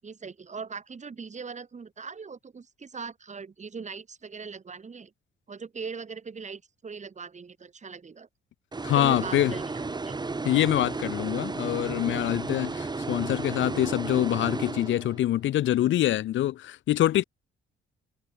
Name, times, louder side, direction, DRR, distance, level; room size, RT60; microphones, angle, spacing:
voice 1, 0.0-5.1 5.5-8.3 8.9-10.2, right 5 dB, 35° right, 7.2 m, -40 dB
sound 1, 8.7-15.4, right 3 dB, 20° right, 1.9 m, -33 dB
voice 2, 8.8-9.5 10.4-17.2, left 13 dB, 70° left, 1.0 m, -25 dB
cardioid pair, 90°, 20 cm